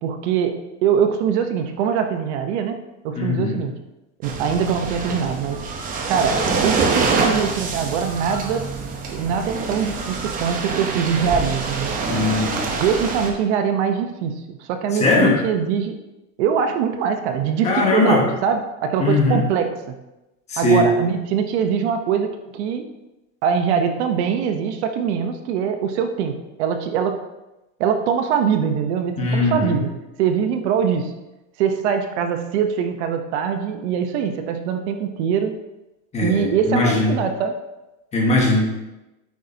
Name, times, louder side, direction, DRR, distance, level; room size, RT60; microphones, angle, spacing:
voice 1, 0.0-2.8 3.0-3.7 4.2-5.7 6.1-8.7 9.1-11.9 12.8-16.0 16.4-20.0 20.6-22.9 23.4-27.2 27.8-29.9 30.2-31.1 31.6-35.6 36.2-37.6, right 7 dB, 65° right, 6 dB, 0.9 m, -22 dB
voice 2, 3.1-3.6 12.1-12.7 15.0-15.4 17.6-18.2 19.0-19.4 20.5-20.8 29.2-29.8 36.1-37.1 38.1-38.6, left 2 dB, 20° left, -2 dB, 1.5 m, -19 dB
sound 1, 4.2-13.3, right 4 dB, 25° right, 0.9 m, -25 dB
9.4 x 8.2 x 2.8 m, 0.99 s
supercardioid pair, 175°, 37 cm